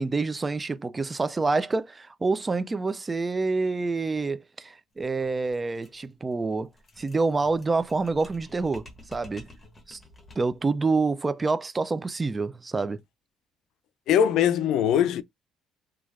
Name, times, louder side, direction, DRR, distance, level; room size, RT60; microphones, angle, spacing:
voice 1, 0.0-6.7 7.0-9.5 9.9-10.0 10.4-13.0, right 3 dB, 20° right, 0.3 m, -27 dB
sound 1, 4.9-10.6, left 1 dB, 20° left, 0.8 m, -51 dB
voice 2, 14.1-15.2, left 9 dB, 70° left, 0.3 m, -21 dB
3.2 x 2.3 x 2.4 m
cardioid pair, 120°, 0 cm